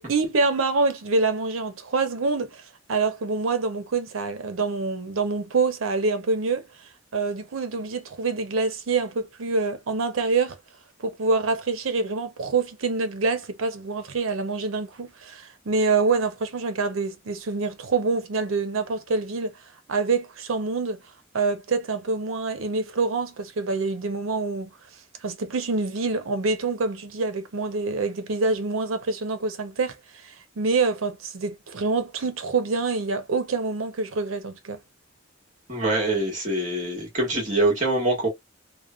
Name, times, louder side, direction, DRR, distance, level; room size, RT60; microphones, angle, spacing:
voice 1, 0.0-6.7 7.1-10.6 11.0-19.5 19.9-21.0 21.3-24.7 25.2-30.0 30.2-34.8, right 4 dB, 85° right, 0.6 m, -26 dB
voice 2, 35.7-38.3, right 2 dB, 40° right, 1.5 m, -24 dB
3.1 x 2.1 x 2.4 m
head